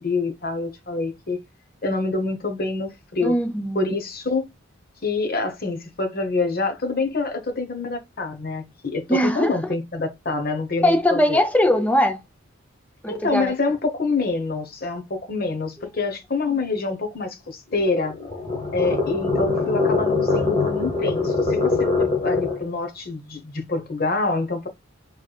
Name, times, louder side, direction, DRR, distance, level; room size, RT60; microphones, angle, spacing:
voice 1, 0.0-1.4 1.8-3.4 3.7-4.5 5.0-11.4 13.1-18.2 18.7-24.7, left 3 dB, 50° left, 1.0 m, -26 dB
voice 2, 3.2-3.9 9.1-9.6 10.8-12.2 13.0-13.5 16.5-16.6, equal, 10° left, 0.5 m, -20 dB
sound 1, 17.7-22.7, left 3 dB, 25° left, 1.5 m, -23 dB
4.6 x 3.2 x 2.3 m
head